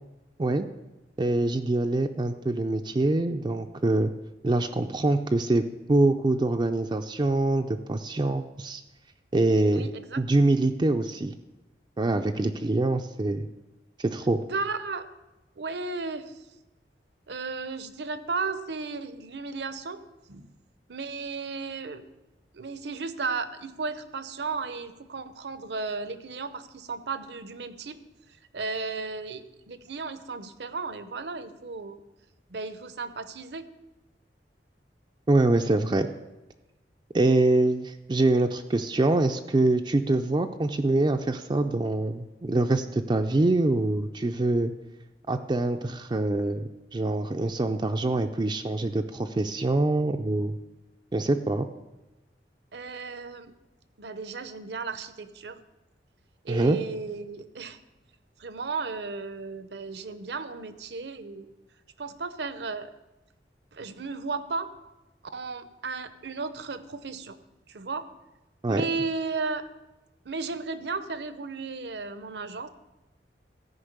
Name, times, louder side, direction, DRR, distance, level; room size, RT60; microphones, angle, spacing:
voice 1, 1.2-4.1 4.4-8.8 9.3-9.9 10.2-11.3 12.0-13.5 14.0-14.4 35.3-36.1 37.1-44.7 45.3-50.6 51.1-51.6 56.5-56.8 68.6-68.8, right 2 dB, 25° right, 5 dB, 0.4 m, -24 dB
voice 2, 9.7-10.5 14.2-15.1 15.6-16.5 17.3-20.0 20.3-20.5 20.9-22.1 22.5-28.0 28.5-32.0 32.5-33.7 52.7-53.5 54.0-55.6 56.4-57.8 58.4-61.5 62.0-62.9 63.7-64.7 65.3-67.4 67.7-68.1 68.7-69.7 70.2-72.7, right 4 dB, 70° right, 12 dB, 0.7 m, -34 dB
13.5 x 5.3 x 6.6 m, 1.0 s
head